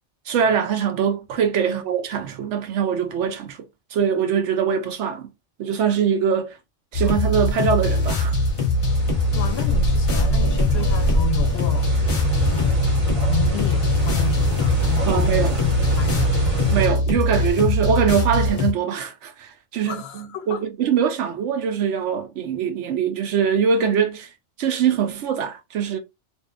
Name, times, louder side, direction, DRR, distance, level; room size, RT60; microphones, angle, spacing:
voice 1, 0.3-3.6 3.9-5.3 5.6-6.6 6.9-8.4 15.1-15.6 16.7-24.3 24.6-26.0, right 7 dB, 80° right, 0.9 m, -22 dB
sound 1, 6.9-18.7, left 2 dB, 30° left, 0.7 m, -22 dB
sound 2, 7.8-16.9, right 2 dB, 35° right, 0.7 m, -26 dB
voice 2, 9.3-11.9 12.4-12.8 13.3-16.3 19.8-20.6, left 7 dB, 65° left, 0.8 m, -32 dB
2.6 x 2.3 x 2.4 m
omnidirectional pair, 1.2 m